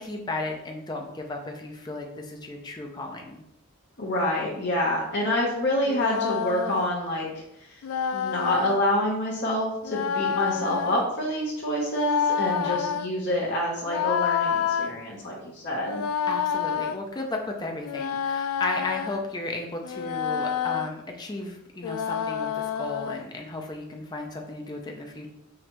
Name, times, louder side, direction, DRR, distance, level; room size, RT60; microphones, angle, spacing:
voice 1, 0.0-3.4 12.6-12.8 16.3-25.3, left 2 dB, 20° left, 2 dB, 0.4 m, -34 dB
voice 2, 4.0-7.8 8.1-16.0, left 1 dB, 55° left, -4 dB, 0.9 m, -27 dB
sound 1, 5.8-6.9 7.8-8.8 9.8-11.1 11.8-13.1 13.9-14.9 15.8-17.0 17.8-19.2 19.8-20.9 21.8-23.2, left 7 dB, 90° left, 0.3 m, -28 dB
5.0 x 3.1 x 3.0 m, 0.81 s
head